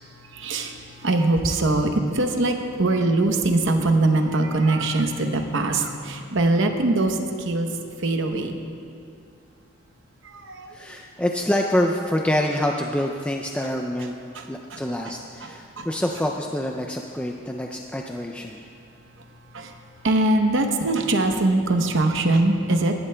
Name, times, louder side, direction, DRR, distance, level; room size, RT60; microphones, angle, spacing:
voice 1, 0.3-7.2 7.4-7.7 8.0-8.5 10.2-11.0 14.3-14.4 14.7-14.8 15.4-15.9 19.5-19.7 20.0-22.9, right 2 dB, 65° right, 5 dB, 0.9 m, -22 dB
voice 2, 10.7-14.2 14.5-18.6, left 1 dB, 5° left, 1 dB, 0.3 m, -26 dB
19.0 x 11.0 x 2.2 m, 2.5 s
head